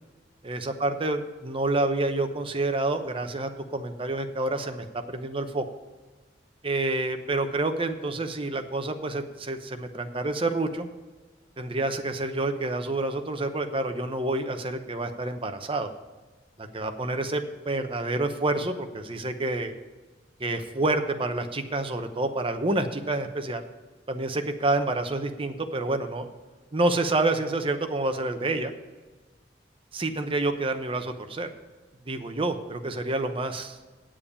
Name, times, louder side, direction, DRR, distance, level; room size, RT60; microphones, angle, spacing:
voice 1, 0.4-5.7 6.6-10.9 11.6-15.9 16.6-19.7 20.4-23.6 24.1-26.3 26.7-28.7 29.9-31.5 32.1-33.8, right 2 dB, 30° right, 7 dB, 0.8 m, -28 dB
8.6 x 7.6 x 6.9 m, 1.3 s
head